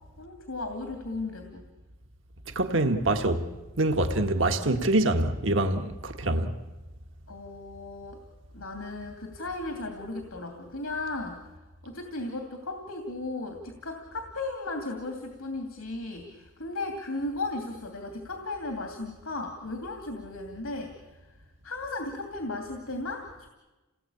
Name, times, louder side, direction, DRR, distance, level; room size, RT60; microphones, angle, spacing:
voice 1, 0.2-1.6 7.3-8.2 8.5-11.4 11.8-21.2 21.6-23.5, left 2 dB, 85° left, 2.8 m, -36 dB
voice 2, 2.5-3.4 3.8-6.5, right 2 dB, 60° right, 1.7 m, -25 dB
29.0 x 18.5 x 8.7 m
head